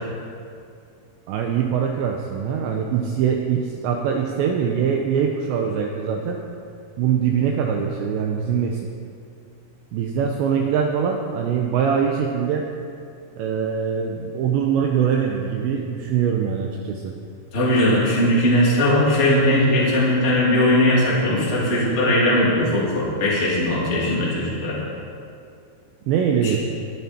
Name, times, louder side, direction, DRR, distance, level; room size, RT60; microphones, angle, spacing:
voice 1, 1.3-6.4 7.0-8.8 9.9-12.7 13.4-17.1 26.1-26.6, right 7 dB, 90° right, 2 dB, 2.5 m, -23 dB
voice 2, 17.5-24.8 26.4-26.6, left 1 dB, 20° left, -6 dB, 1.8 m, -19 dB
22.0 x 7.9 x 4.4 m, 2.4 s
omnidirectional pair, 5.9 m